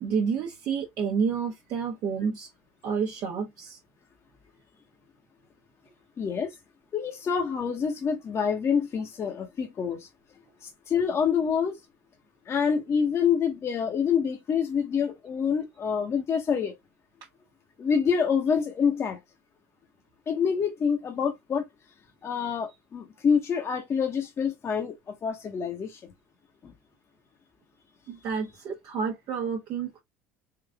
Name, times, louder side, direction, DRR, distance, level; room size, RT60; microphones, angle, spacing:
voice 1, 0.0-2.5 2.8-3.8 28.1-30.0, right 6 dB, 55° right, 1.0 m, -29 dB
voice 2, 6.2-6.5 6.9-10.1 10.6-11.8 12.5-16.7 17.8-19.2 20.3-21.6 22.2-26.1 26.6-26.7, left 6 dB, 35° left, 0.9 m, -27 dB
3.8 x 2.5 x 3.4 m
supercardioid pair, 85°, 8 cm